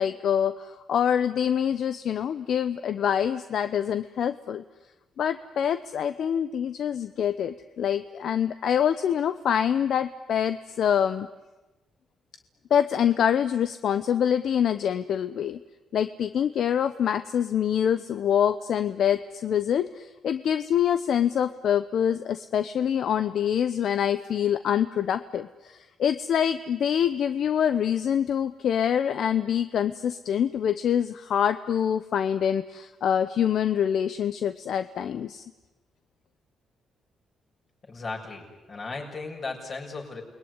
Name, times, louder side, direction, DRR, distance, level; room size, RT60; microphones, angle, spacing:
voice 1, 0.0-4.6 5.2-11.3 12.7-15.6 15.9-35.4, left 9 dB, 65° left, 11 dB, 0.8 m, -25 dB
voice 2, 37.8-40.2, left 3 dB, 40° left, 0 dB, 7.0 m, -36 dB
29.0 x 20.5 x 9.8 m, 1.1 s
cardioid pair, 110°, 0 cm